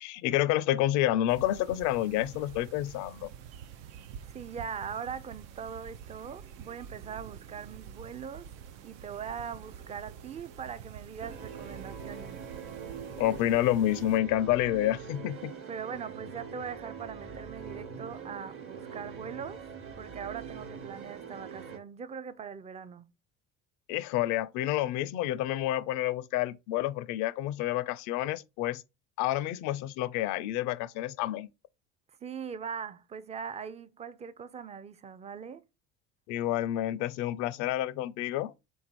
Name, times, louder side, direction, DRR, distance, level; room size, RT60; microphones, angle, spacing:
voice 1, 0.0-3.3 13.2-15.5 23.9-28.8 29.2-31.5 36.3-38.5, left 13 dB, 65° left, 0.5 m, -29 dB
sound 1, 1.3-14.2, right 8 dB, 70° right, 0.6 m, -47 dB
voice 2, 4.3-8.5 8.8-12.4 15.7-19.7 20.0-23.1 32.2-35.6, right 7 dB, 20° right, 0.4 m, -41 dB
sound 2, 11.2-21.8, right 6 dB, 40° right, 1.1 m, -43 dB
3.8 x 2.6 x 4.4 m
hypercardioid pair, 70°, 32 cm